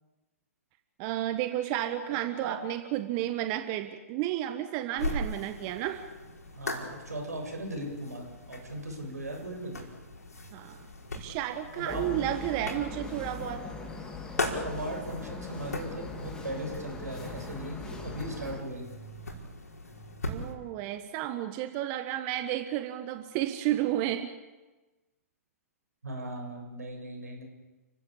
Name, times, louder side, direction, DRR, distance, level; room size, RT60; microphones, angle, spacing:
voice 1, 1.0-6.1 10.5-10.8 11.1-13.6 20.3-24.3, right 12 dB, 35° right, 9 dB, 1.4 m, -32 dB
voice 2, 2.1-2.5 6.5-9.8 11.7-12.0 14.4-18.9 26.0-27.4, right 1 dB, 80° right, 3 dB, 7.3 m, -38 dB
sound 1, 5.0-20.5, left 2 dB, 80° left, 5.4 m, -40 dB
sound 2, 11.9-18.6, left 3 dB, 10° left, 3.0 m, -41 dB
30.0 x 16.0 x 8.6 m, 1.2 s
figure-of-eight pair, 120°, 8 cm